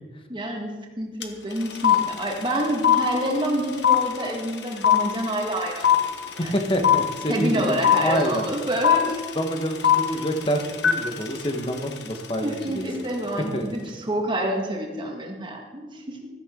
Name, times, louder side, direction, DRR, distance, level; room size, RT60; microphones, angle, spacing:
voice 1, 0.3-6.0 6.3-6.5 7.3-9.2 12.4-16.3, right 1 dB, 25° right, 1 dB, 1.9 m, -27 dB
sound 1, 1.2-1.3 1.5-12.7, left 9 dB, 65° left, 1.3 m, -22 dB
voice 2, 6.4-8.5 9.3-12.8 13.4-13.6, equal, 30° left, 4 dB, 1.5 m, -27 dB
14.5 x 13.5 x 3.9 m, 1.4 s
head